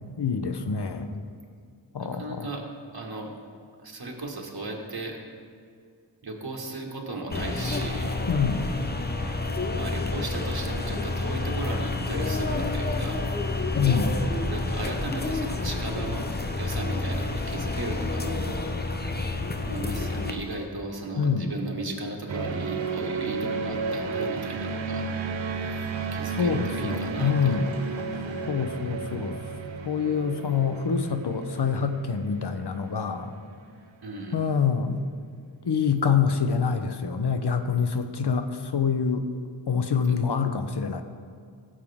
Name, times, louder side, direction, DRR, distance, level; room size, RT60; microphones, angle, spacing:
voice 1, 0.2-1.2 1.9-2.5 8.3-8.7 13.8-14.2 21.2-21.5 26.3-27.8 28.5-29.4 29.9-33.3 34.3-35.0 35.6-39.3 39.7-41.0, left 6 dB, 60° left, 8 dB, 0.8 m, -26 dB
voice 2, 2.0-2.6 2.9-3.4 3.8-5.2 6.2-8.2 8.9-9.2 9.6-13.3 14.4-16.3 16.5-18.7 19.6-25.1 26.1-27.6 28.2-28.5 34.0-34.5 40.0-40.1, right 2 dB, 55° right, 0 dB, 1.8 m, -36 dB
sound 1, 7.3-20.3, left 2 dB, 20° left, 0.8 m, -29 dB
sound 2, 10.3-18.4 20.1-20.7 22.8-22.9 25.0-25.1 25.7-28.5, right 1 dB, 10° right, 2.3 m, -47 dB
sound 3, 22.3-33.6, right 4 dB, 85° right, 0.7 m, -33 dB
17.0 x 7.5 x 3.6 m, 2.1 s
wide cardioid pair, 55°, 45 cm